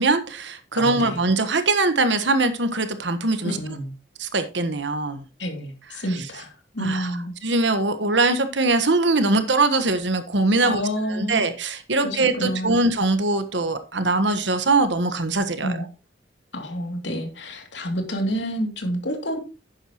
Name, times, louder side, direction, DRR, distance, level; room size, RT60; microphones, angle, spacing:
voice 1, 0.0-3.5 4.2-5.2 6.8-7.1 7.4-10.8 11.1-15.7, right 2 dB, 75° right, 9 dB, 1.4 m, -22 dB
voice 2, 0.8-1.2 3.4-3.9 5.4-7.3 10.6-11.4 12.0-12.8 15.6-15.8 16.5-19.4, equal, 75° left, 3 dB, 2.7 m, -28 dB
11.5 x 9.0 x 3.0 m, 0.31 s
head